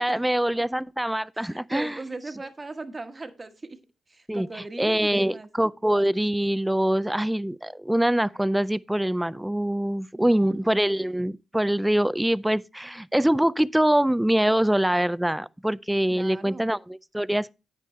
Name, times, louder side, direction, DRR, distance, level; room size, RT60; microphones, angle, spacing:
voice 1, 0.0-1.9 4.3-4.5 4.8-17.5, right 1 dB, 5° right, 0.4 m, -24 dB
voice 2, 1.3-3.8 4.1-5.5 10.1-10.7 16.1-16.7, right 3 dB, 30° right, 1.2 m, -39 dB
9.1 x 8.6 x 3.1 m
supercardioid pair, 50°, 0 cm